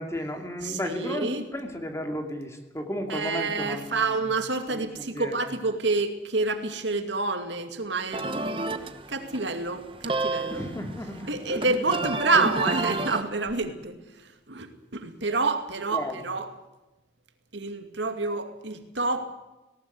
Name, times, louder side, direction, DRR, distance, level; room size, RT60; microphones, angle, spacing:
voice 1, 0.0-4.1 4.7-5.5 8.7-8.8 10.5-11.8 12.4-12.5 15.9-16.2, left 1 dB, 15° left, 4 dB, 2.7 m, -34 dB
voice 2, 0.6-1.4 3.1-10.6 11.3-14.0 14.5-16.5 17.5-19.3, right 3 dB, 80° right, 7 dB, 2.3 m, -28 dB
sound 1, 8.1-13.2, right 2 dB, 30° right, 1.1 m, -31 dB
19.0 x 18.0 x 8.1 m, 1.0 s
head